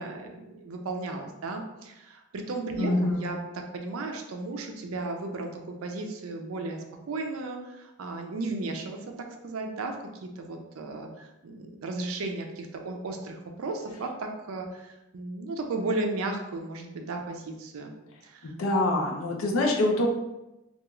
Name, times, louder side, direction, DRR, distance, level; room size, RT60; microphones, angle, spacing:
voice 1, 0.0-3.4 3.7-9.0 9.4-10.0 10.2-17.9 18.2-18.5, right 2 dB, 85° right, 3 dB, 0.4 m, -35 dB
voice 2, 2.8-3.3 18.4-20.1, left 1 dB, 80° left, 0 dB, 0.5 m, -25 dB
2.3 x 2.3 x 3.0 m, 0.96 s
head